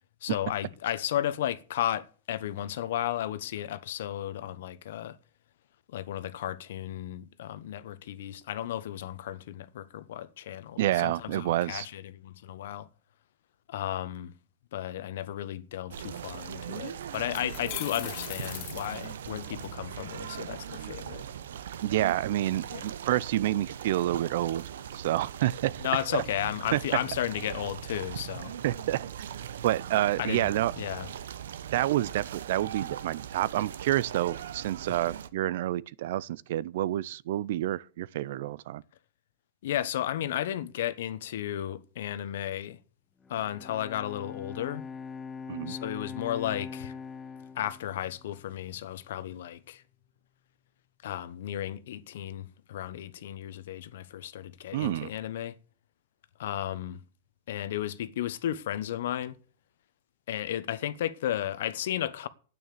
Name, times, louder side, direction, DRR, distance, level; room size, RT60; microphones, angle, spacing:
voice 1, 0.2-5.2 5.9-12.9 13.7-14.3 14.7-21.2 22.7-22.9 25.8-28.5 30.2-31.1 39.6-42.8 43.3-44.9 45.7-46.9 47.5-49.8 51.0-55.5 56.4-57.0 57.5-59.3 60.3-62.3, left 11 dB, 65° left, 1.0 m, -34 dB
voice 2, 10.8-11.9 21.8-24.6 24.9-25.8 26.1-26.2 26.7-26.8 28.6-29.3 29.6-30.7 31.7-38.8 45.5-45.7 54.7-55.1, right 14 dB, 55° right, 0.5 m, -28 dB
sound 1, 15.9-35.3, right 9 dB, 85° right, 0.9 m, -40 dB
sound 2, 16.5-16.6 17.1-19.7, left 15 dB, 40° left, 1.0 m, -40 dB
Bowed string instrument, 43.2-48.6, left 5 dB, 10° left, 0.7 m, -42 dB
9.6 x 9.0 x 6.7 m
supercardioid pair, 165°, 0 cm